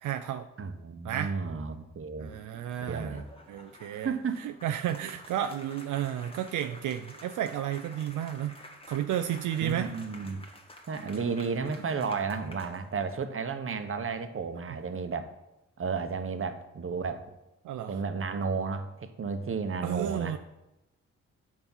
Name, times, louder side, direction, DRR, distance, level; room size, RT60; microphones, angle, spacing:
voice 1, 0.0-0.5 1.0-1.3 2.2-3.2 3.5-8.6 8.9-9.9 17.6-18.0 19.8-20.4, right 11 dB, 80° right, 8 dB, 0.5 m, -32 dB
voice 2, 0.6-2.3 2.9-3.2 3.9-4.4 9.6-10.4 10.9-15.3 15.8-17.2 17.9-20.4, right 5 dB, 45° right, 9 dB, 0.9 m, -33 dB
sound 1, 2.2-13.2, left 1 dB, 20° left, 1.4 m, -51 dB
7.2 x 5.4 x 5.5 m, 0.94 s
cardioid pair, 65°, 30 cm